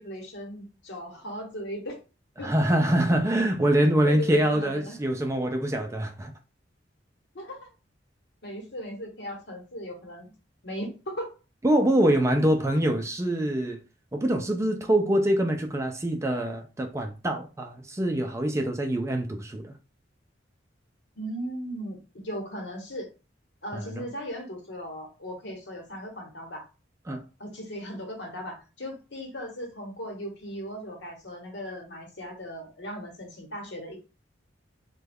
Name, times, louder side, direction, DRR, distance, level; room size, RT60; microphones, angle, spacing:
voice 1, 0.0-2.0 2.4-2.5 4.0-5.0 7.3-7.7 8.4-10.3 10.6-11.4 21.2-23.1 23.6-26.6 27.4-34.0, equal, 65° left, 1.1 m, -37 dB
voice 2, 2.4-6.3 11.6-13.8 14.1-19.7 23.7-24.0 27.1-27.2, right 1 dB, 15° right, 0.4 m, -24 dB
3.1 x 2.2 x 3.5 m
head